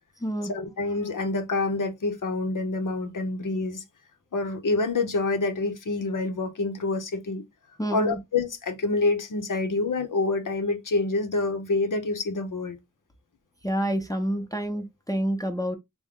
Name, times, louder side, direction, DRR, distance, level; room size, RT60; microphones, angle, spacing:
voice 1, 0.5-3.8 4.3-7.4 7.9-12.8, left 3 dB, 80° left, 0.8 m, -27 dB
voice 2, 7.8-8.2 13.6-15.8, equal, 10° left, 0.6 m, -28 dB
3.6 x 2.1 x 3.5 m
wide cardioid pair, 80°, 31 cm